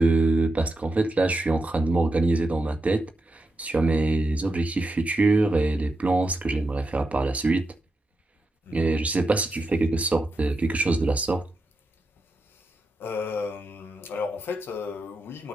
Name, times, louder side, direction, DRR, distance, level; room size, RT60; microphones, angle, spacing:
voice 1, 0.0-3.1 3.3-7.7 8.7-11.4, right 2 dB, 40° right, 1.9 m, -24 dB
voice 2, 13.0-15.5, left 5 dB, 80° left, 1.5 m, -33 dB
9.4 x 5.8 x 5.6 m
supercardioid pair, 45°, 4 cm